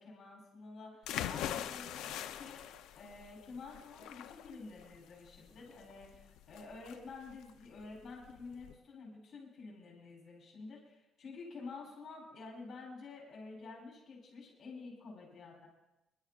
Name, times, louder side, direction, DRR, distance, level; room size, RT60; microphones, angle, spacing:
voice 1, 0.0-15.7, left 4 dB, 40° left, -2 dB, 4.0 m, -50 dB
sound 1, 1.0-8.7, left 11 dB, 90° left, 0.6 m, -43 dB
26.0 x 11.0 x 2.5 m, 0.93 s
cardioid pair, 165°, 0 cm